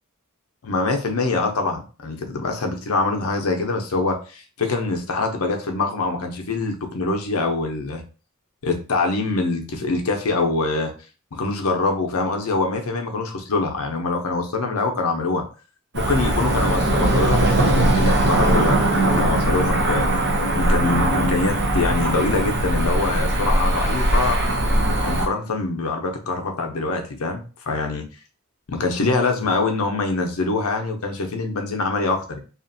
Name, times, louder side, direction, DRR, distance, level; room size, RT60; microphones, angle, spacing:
voice 1, 0.6-8.0 8.6-10.9 11.3-15.5 15.9-20.0 20.5-24.4 25.0-28.0 28.7-32.4, left 3 dB, 70° left, 4 dB, 0.6 m, -24 dB
Cricket / Motor vehicle (road), 15.9-25.3, right 1 dB, 55° right, 0.7 m, -20 dB
2.8 x 2.4 x 2.6 m, 0.36 s
head